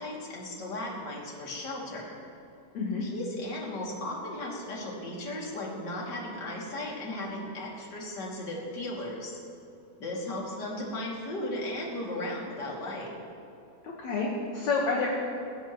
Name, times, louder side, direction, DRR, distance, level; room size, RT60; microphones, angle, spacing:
voice 1, 0.0-2.2 3.0-9.4 10.0-13.1, left 1 dB, 30° left, -4 dB, 2.7 m, -36 dB
voice 2, 2.7-3.1 13.8-15.1, left 4 dB, 55° left, -3 dB, 2.1 m, -29 dB
22.0 x 16.5 x 3.2 m, 2.8 s
omnidirectional pair, 5.0 m